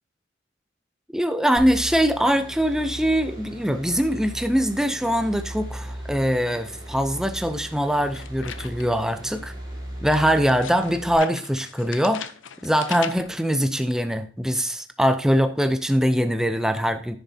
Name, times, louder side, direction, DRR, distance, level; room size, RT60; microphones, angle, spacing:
voice 1, 1.1-9.5 10.0-12.3 12.6-17.2, equal, 5° right, 9 dB, 0.5 m, -22 dB
sound 1, 1.6-11.2, right 1 dB, 25° right, 3.4 m, -37 dB
sound 2, 8.1-9.1 10.1-13.4, left 8 dB, 80° left, 0.7 m, -39 dB
14.0 x 6.9 x 2.8 m, 0.43 s
head